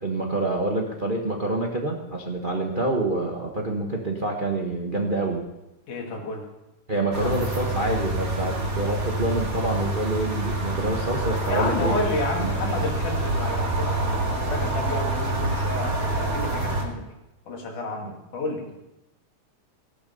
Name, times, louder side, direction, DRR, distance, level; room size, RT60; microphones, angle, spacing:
voice 1, 0.0-5.4 6.9-12.0 12.4-12.5, right 2 dB, 85° right, 1 dB, 0.4 m, -27 dB
voice 2, 5.9-6.5 7.2-7.3 11.5-17.1 17.5-18.7, left 2 dB, 85° left, 1 dB, 3.7 m, -30 dB
sound 1, 7.1-16.8, right 2 dB, 35° right, 2.0 m, -27 dB
15.5 x 12.0 x 5.4 m, 0.94 s
omnidirectional pair, 3.4 m